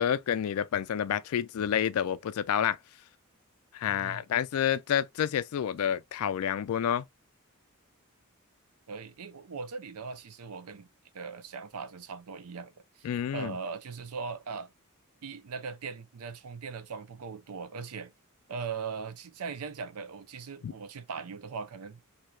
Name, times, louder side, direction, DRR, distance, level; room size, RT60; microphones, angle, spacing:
voice 1, 0.0-2.8 3.7-7.0 13.0-13.6 20.6-20.7, left 9 dB, 70° left, 0.3 m, -29 dB
voice 2, 3.8-4.2 8.9-10.9 11.1-14.7 15.2-18.1 18.5-22.0, right 5 dB, 85° right, 0.5 m, -40 dB
4.4 x 2.8 x 2.2 m
head